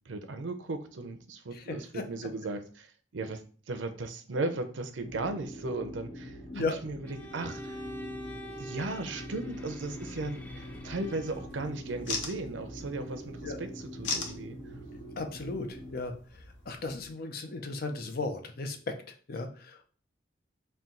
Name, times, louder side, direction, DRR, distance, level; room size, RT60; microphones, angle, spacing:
voice 1, 0.1-2.9 3.1-3.4 3.7-7.8 8.6-14.6, right 2 dB, 85° right, 8 dB, 0.6 m, -36 dB
voice 2, 1.5-2.0 6.5-6.8 13.4-13.6 15.2-18.9 19.3-19.8, left 3 dB, 55° left, 6 dB, 0.6 m, -36 dB
sound 1, 5.0-15.9, equal, 35° left, 1.1 m, -44 dB
Bowed string instrument, 7.1-11.6, equal, 10° left, 0.4 m, -46 dB
sound 2, 9.8-17.1, left 4 dB, 90° left, 0.7 m, -42 dB
4.3 x 2.3 x 3.7 m, 0.41 s
head